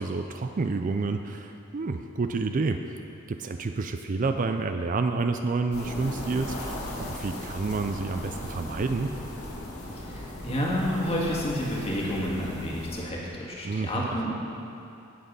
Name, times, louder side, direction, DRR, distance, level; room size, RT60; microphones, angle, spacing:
voice 1, 0.0-3.0 3.3-9.1 13.6-14.2, right 3 dB, 35° right, 7 dB, 0.4 m, -29 dB
sound 1, 5.7-13.0, left 1 dB, 75° left, 2.3 m, -37 dB
voice 2, 9.9-14.3, equal, 25° left, -3 dB, 1.9 m, -30 dB
17.0 x 6.4 x 5.4 m, 2.7 s
head